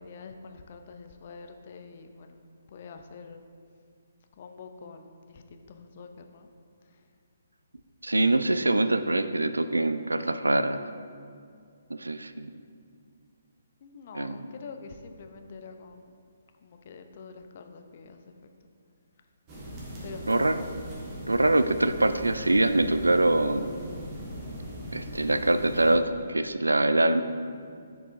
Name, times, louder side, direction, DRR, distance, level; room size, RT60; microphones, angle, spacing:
voice 1, 0.0-2.4 2.7-3.4 4.4-6.5 13.8-16.2 16.6-18.3 20.0-20.5, left 4 dB, 45° left, 6 dB, 0.5 m, -45 dB
voice 2, 8.0-10.8 11.9-12.5 14.1-14.5 20.3-20.6 21.3-23.7 24.9-27.2, right 2 dB, 85° right, 11 dB, 0.3 m, -24 dB
sound 1, 19.5-26.0, equal, 25° right, 1.5 m, -39 dB
9.6 x 4.8 x 2.6 m, 2.3 s
figure-of-eight pair, 135°, 0 cm